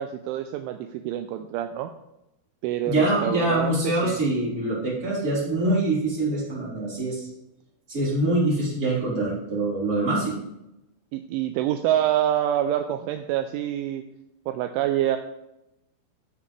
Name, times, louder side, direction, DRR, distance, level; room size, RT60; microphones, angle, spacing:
voice 1, 0.0-1.9 2.6-4.2 11.1-14.0 14.5-15.2, right 11 dB, 85° right, 7 dB, 2.8 m, -26 dB
voice 2, 2.8-7.3 7.9-10.3, right 2 dB, 20° right, -7 dB, 4.0 m, -24 dB
11.0 x 9.8 x 3.3 m, 0.88 s
omnidirectional pair, 5.8 m